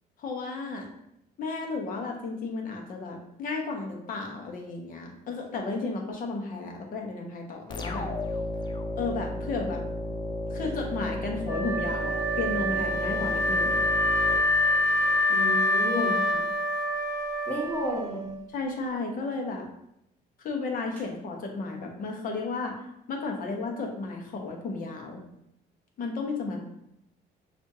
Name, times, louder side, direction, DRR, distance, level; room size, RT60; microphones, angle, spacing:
voice 1, 0.2-0.9 1.4-8.1 9.0-9.8 10.5-13.8 15.9-16.5 18.5-19.7 20.4-22.7 23.1-25.2 26.0-26.6, left 3 dB, 55° left, 2 dB, 0.9 m, -33 dB
sound 1, 7.7-15.2, left 1 dB, 25° left, 0.4 m, -34 dB
Wind instrument woodwind instrument, 11.5-18.5, left 1 dB, 20° right, 1.0 m, -26 dB
voice 2, 15.3-16.2 17.5-18.3, left 1 dB, 10° left, -5 dB, 1.3 m, -31 dB
6.1 x 2.5 x 2.7 m, 0.79 s
cardioid pair, 110°, 17 cm